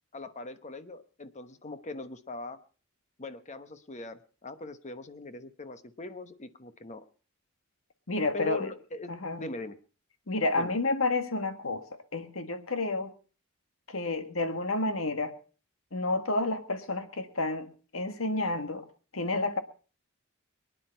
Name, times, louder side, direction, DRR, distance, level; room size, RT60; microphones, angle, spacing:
voice 1, 0.1-2.6 3.2-7.0 8.3-9.8 10.5-10.7, left 3 dB, 35° left, 11 dB, 1.0 m, -41 dB
voice 2, 8.1-8.7 9.1-9.5 10.3-11.8 12.1-13.1 13.9-15.3 15.9-18.8 19.1-19.6, left 2 dB, 85° left, 8 dB, 1.7 m, -30 dB
23.5 x 10.0 x 4.4 m, 0.38 s
head